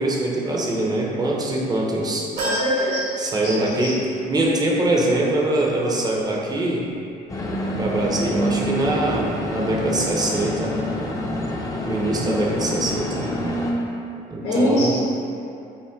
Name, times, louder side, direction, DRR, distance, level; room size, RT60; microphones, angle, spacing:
voice 1, 0.0-2.3 3.2-4.0 4.3-6.9 7.8-10.8 11.9-13.2 14.3-14.9, right 2 dB, 25° right, -2 dB, 0.6 m, -23 dB
voice 2, 2.4-3.1 3.4-3.9 14.4-15.0, left 1 dB, 80° left, -12 dB, 1.4 m, -23 dB
sound 1, 2.4-4.0 4.4-4.5 5.7-5.8, right 2 dB, 70° right, 1.3 m, -29 dB
sound 2, 7.3-13.7, left 1 dB, 20° left, 0.5 m, -27 dB
5.4 x 2.1 x 3.4 m, 2.7 s
cardioid pair, 110°, 17 cm